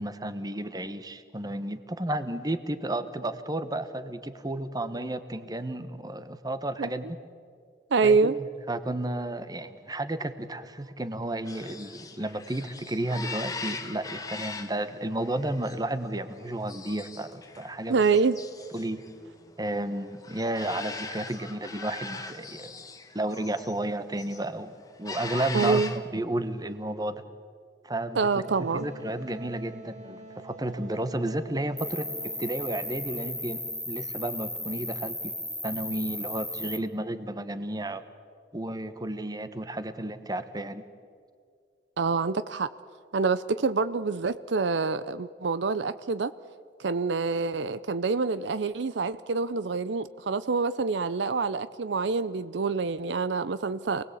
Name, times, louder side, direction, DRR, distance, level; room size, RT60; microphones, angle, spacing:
voice 1, 0.0-7.1 8.0-18.0 18.7-19.0 19.6-22.8 23.1-25.8 26.1-27.2 27.8-28.3 28.6-32.1 32.4-33.6 33.9-35.3 35.6-38.0 38.5-40.8, right 1 dB, 20° right, 11 dB, 1.2 m, -32 dB
voice 2, 7.9-8.4 17.9-18.4 25.5-25.9 28.2-28.9 42.0-42.7 43.1-46.3 46.8-54.0, right 4 dB, 70° right, 14 dB, 0.6 m, -26 dB
sound 1, 11.5-23.8 24.0-24.5 24.9-26.0, left 4 dB, 20° left, 1.4 m, -40 dB
Wind instrument woodwind instrument, 28.4-34.0, right 2 dB, 40° right, 2.0 m, -47 dB
Cricket, 31.8-36.8, left 1 dB, 5° left, 1.3 m, -35 dB
28.0 x 19.5 x 8.4 m, 2.1 s
head